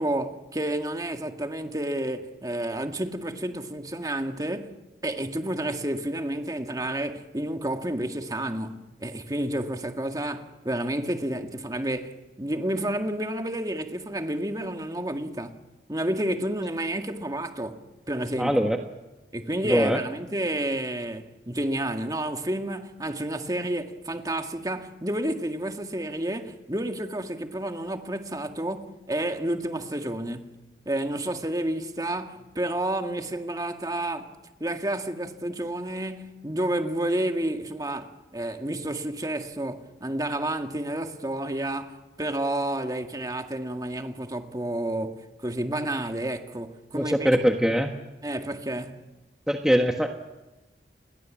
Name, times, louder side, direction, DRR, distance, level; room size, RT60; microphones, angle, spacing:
voice 1, 0.0-4.7 5.0-18.6 19.3-34.3 34.6-47.3 48.2-49.0, right 1 dB, 20° right, 1.9 m, -30 dB
voice 2, 18.4-18.8 19.6-20.0 46.9-47.9 49.5-50.1, equal, 5° right, 1.4 m, -22 dB
29.5 x 22.0 x 7.5 m
head